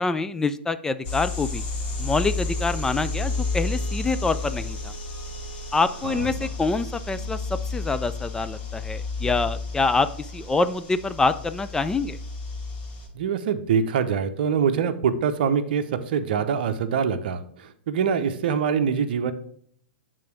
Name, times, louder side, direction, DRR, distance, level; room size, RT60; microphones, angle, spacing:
voice 1, 0.0-1.6 2.0-4.9 5.7-12.2, left 3 dB, 10° left, 11 dB, 0.3 m, -26 dB
sound 1, 1.0-13.1, left 3 dB, 35° left, 2.4 m, -31 dB
Bowed string instrument, 1.8-6.8, left 7 dB, 60° left, 2.3 m, -47 dB
voice 2, 6.0-6.5 13.1-19.3, right 7 dB, 55° right, 10 dB, 0.7 m, -24 dB
8.6 x 3.8 x 4.7 m, 0.63 s
figure-of-eight pair, 110°, 6 cm